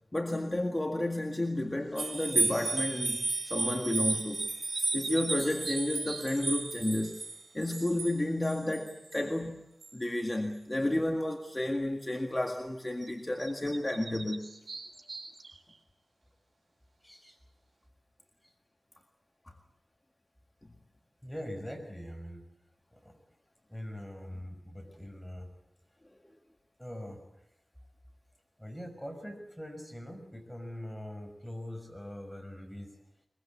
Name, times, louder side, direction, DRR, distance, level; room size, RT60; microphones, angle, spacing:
voice 1, 0.1-4.5 4.9-7.2 7.5-9.6 9.9-14.5, left 1 dB, 20° left, 4 dB, 1.9 m, -31 dB
sound 1, 1.9-2.2 4.0-6.6 13.0-13.1 13.4-15.8, right 4 dB, 85° right, 3.7 m, -43 dB
sound 2, 2.0-9.3 9.8-9.9, right 3 dB, 65° right, 4.1 m, -33 dB
voice 2, 17.0-17.4 21.2-22.4 22.9-23.2 23.7-25.5 26.8-27.2 28.6-32.9, equal, 5° left, 4 dB, 6.0 m, -42 dB
23.0 x 22.5 x 8.5 m, 0.83 s
wide cardioid pair, 85°, 0 cm